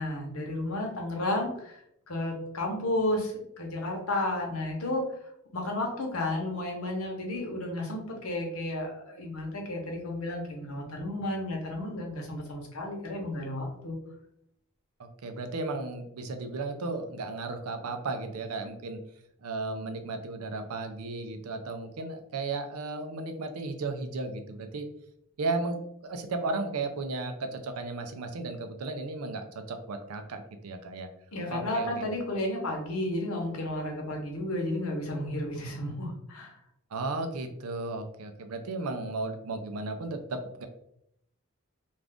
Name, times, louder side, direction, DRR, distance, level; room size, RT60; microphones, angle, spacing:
voice 1, 0.0-1.8 2.1-5.1 5.5-14.0 31.3-36.6, left 1 dB, 80° left, 1 dB, 0.9 m, -32 dB
voice 2, 15.0-19.0 19.4-24.9 25.4-31.1 31.5-32.1 36.9-40.7, right 3 dB, 90° right, 6 dB, 0.5 m, -35 dB
2.4 x 2.4 x 3.4 m, 0.74 s
head